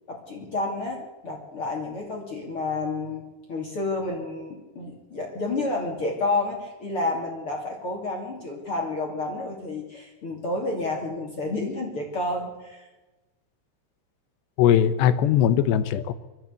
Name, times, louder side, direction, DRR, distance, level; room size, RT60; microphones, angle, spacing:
voice 1, 0.1-3.2 3.5-12.9, left 2 dB, 35° left, -1 dB, 3.0 m, -30 dB
voice 2, 14.6-16.1, left 9 dB, 75° left, 13 dB, 2.9 m, -20 dB
23.0 x 13.5 x 8.3 m, 1.1 s
omnidirectional pair, 5.4 m